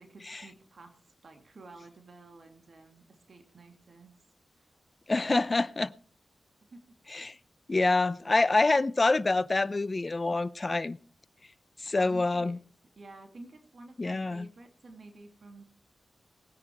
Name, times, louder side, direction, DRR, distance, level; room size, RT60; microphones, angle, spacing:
voice 1, 0.0-4.1 4.6-4.7 6.6-7.0 12.0-12.5 13.0-15.6, right 2 dB, 60° right, 2.4 m, -51 dB
voice 2, 5.1-5.9 7.1-7.4 7.7-11.0 11.8-12.6 14.0-14.5, left 3 dB, 35° left, 0.7 m, -26 dB
19.0 x 9.7 x 4.6 m
cardioid pair, 55°, 0 cm